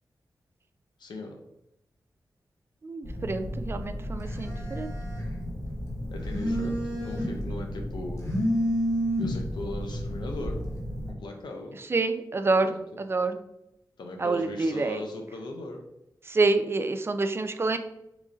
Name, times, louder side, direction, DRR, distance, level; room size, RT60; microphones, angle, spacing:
voice 1, 1.0-1.4 6.1-8.2 9.2-10.6 11.1-11.8 12.6-12.8 14.0-15.8, left 2 dB, 85° left, 3 dB, 0.4 m, -38 dB
voice 2, 2.8-4.9 11.9-13.4 14.2-15.0 16.3-17.8, right 3 dB, 35° right, 9 dB, 0.3 m, -27 dB
Telephone, 3.0-11.1, equal, 45° left, 1.3 m, -31 dB
3.1 x 2.5 x 3.7 m, 0.84 s
wide cardioid pair, 85°, 7 cm